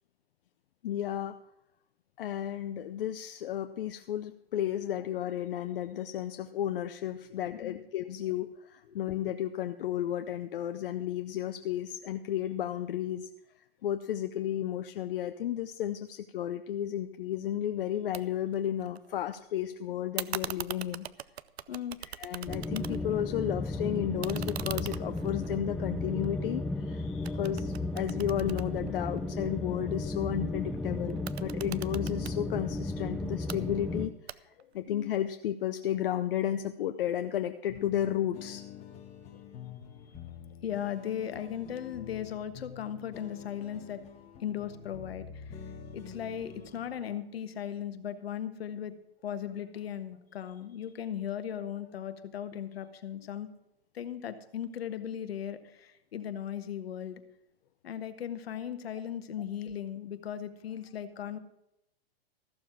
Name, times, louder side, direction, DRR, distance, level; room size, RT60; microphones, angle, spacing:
voice 1, 0.8-1.3 2.2-13.3 13.8-21.1 22.1-34.1 34.7-38.6, left 11 dB, 60° left, 9 dB, 0.7 m, -33 dB
sound 1, 18.1-18.2 18.5-19.4 20.2-23.2 23.6-26.8 27.2-29.5 31.1-32.4 33.2-33.6 34.3-34.7, right 10 dB, 85° right, 0.6 m, -41 dB
sound 2, 22.5-34.1, left 2 dB, ahead, 0.6 m, -34 dB
sound 3, 37.7-47.2, left 8 dB, 20° left, 1.6 m, -47 dB
voice 2, 40.6-44.0 44.4-45.6 45.9-48.9 49.2-53.5 53.9-57.2 57.8-61.4, left 9 dB, 75° left, 10 dB, 1.4 m, -37 dB
14.5 x 7.2 x 6.1 m, 0.82 s
hypercardioid pair, 135°, 31 cm